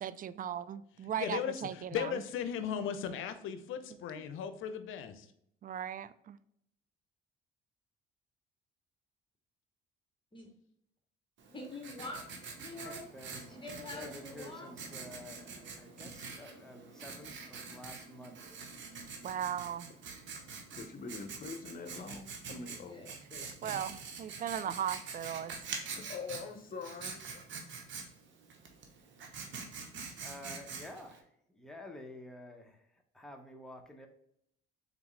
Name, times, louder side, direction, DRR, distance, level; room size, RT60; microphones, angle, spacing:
voice 1, 0.0-2.1 5.6-6.4 19.2-19.9 23.6-25.6, right 9 dB, 40° right, 0.4 m, -37 dB
voice 2, 1.2-5.3, left 8 dB, 70° left, 0.6 m, -37 dB
Writing, 11.4-31.2, right 5 dB, 65° right, 1.0 m, -46 dB
voice 3, 11.5-12.2 12.6-13.0 13.5-14.7 22.6-23.8, left 2 dB, 25° left, 1.1 m, -46 dB
voice 4, 12.8-13.6 13.9-18.5 29.7-29.9 30.2-34.1, left 1 dB, ahead, 0.9 m, -50 dB
voice 5, 20.7-23.0 24.7-24.8 25.9-28.0, left 4 dB, 40° left, 0.8 m, -45 dB
4.0 x 3.5 x 3.2 m
supercardioid pair, 75°, 21 cm